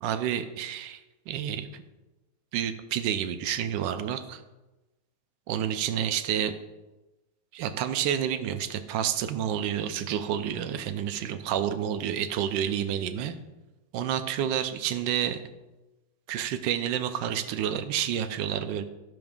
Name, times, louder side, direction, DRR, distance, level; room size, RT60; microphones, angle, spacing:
voice 1, 0.0-1.0 1.3-1.8 2.5-4.4 5.5-6.5 7.5-13.3 13.9-15.4 16.3-18.8, right 9 dB, 80° right, 9 dB, 1.3 m, -29 dB
15.5 x 5.2 x 2.4 m, 1.1 s
omnidirectional pair, 2.0 m